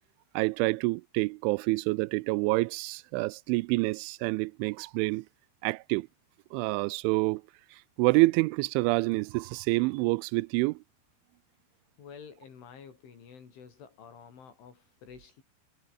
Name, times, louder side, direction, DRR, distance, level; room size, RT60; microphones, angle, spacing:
voice 1, 0.4-5.3 5.6-6.1 6.5-7.4 8.0-10.8, right 24 dB, 90° right, 3.0 m, -27 dB
voice 2, 12.0-15.4, left 6 dB, 85° left, 7.6 m, -50 dB
omnidirectional pair, 5.4 m